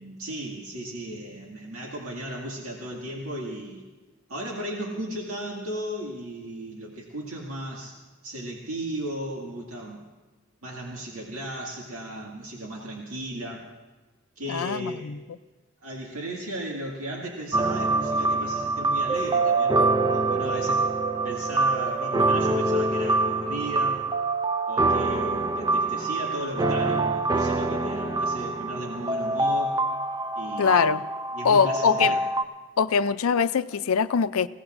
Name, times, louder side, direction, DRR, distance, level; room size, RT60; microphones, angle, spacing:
voice 1, 0.0-3.8 4.3-8.0 8.2-10.0 10.6-13.7 14.4-15.1 15.8-19.8 20.1-20.9 21.2-24.0 24.7-29.8 30.4-30.9 31.3-32.2, right 1 dB, 85° right, -2 dB, 2.1 m, -35 dB
voice 2, 14.5-15.2 30.6-31.0 31.4-32.2 32.8-34.5, left 6 dB, 80° left, 14 dB, 0.5 m, -22 dB
sound 1, 17.5-32.4, right 2 dB, 20° right, 0.4 m, -25 dB
26.5 x 17.0 x 2.6 m, 1.2 s
head